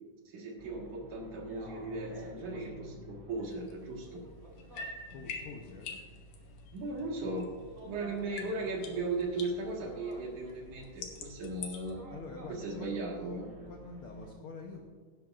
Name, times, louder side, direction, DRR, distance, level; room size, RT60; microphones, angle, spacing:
voice 1, 0.3-4.3 6.7-7.5 7.8-12.0 12.5-13.5, right 2 dB, 70° right, 0 dB, 3.1 m, -37 dB
sound 1, 0.6-14.3, equal, 20° right, 1.0 m, -51 dB
sound 2, 3.5-7.9 8.2-11.9, left 4 dB, 60° left, 2.2 m, -47 dB
voice 2, 5.1-6.0 12.1-14.8, left 4 dB, 90° left, 1 dB, 1.2 m, -46 dB
16.5 x 10.5 x 2.5 m, 1.5 s
omnidirectional pair, 3.8 m